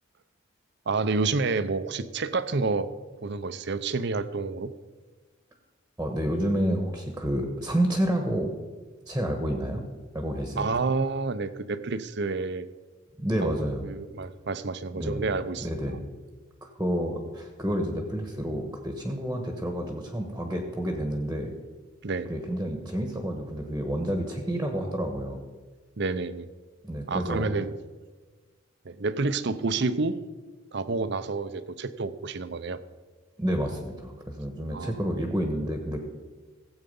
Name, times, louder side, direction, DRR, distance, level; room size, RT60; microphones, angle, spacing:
voice 1, 0.9-2.9 3.2-4.7 10.6-12.7 13.4-13.6 13.8-15.7 22.0-22.3 26.0-26.5 27.1-27.7 28.8-30.2 30.7-32.8 34.7-35.0, right 3 dB, 60° right, 13 dB, 0.6 m, -29 dB
voice 2, 6.0-8.5 9.1-9.8 10.1-10.7 13.2-13.9 14.9-15.3 15.6-16.0 16.6-21.5 22.3-25.4 26.8-27.5 33.4-36.0, equal, 10° right, 3 dB, 1.2 m, -29 dB
16.5 x 8.1 x 5.4 m, 1.3 s
head